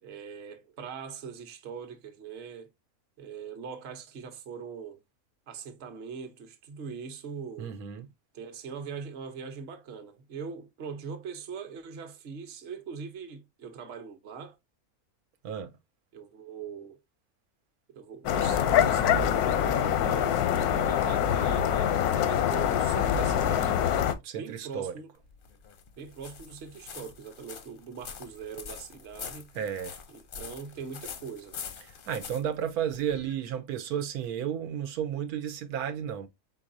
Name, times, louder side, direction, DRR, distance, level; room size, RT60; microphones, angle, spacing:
voice 1, 0.0-2.7 3.2-5.0 5.5-7.7 8.3-14.6 16.1-17.0 17.9-24.0 24.4-25.1 26.0-29.5 30.1-31.6, right 6 dB, 50° right, 1.0 m, -41 dB
voice 2, 7.6-8.1 15.4-15.7 24.2-25.0 29.5-30.0 31.8-36.3, right 9 dB, 85° right, 1.2 m, -33 dB
sound 1, 18.3-24.1, left 9 dB, 85° left, 1.1 m, -25 dB
sound 2, 25.2-33.3, left 6 dB, 55° left, 0.6 m, -44 dB
4.5 x 4.0 x 2.6 m
omnidirectional pair, 1.5 m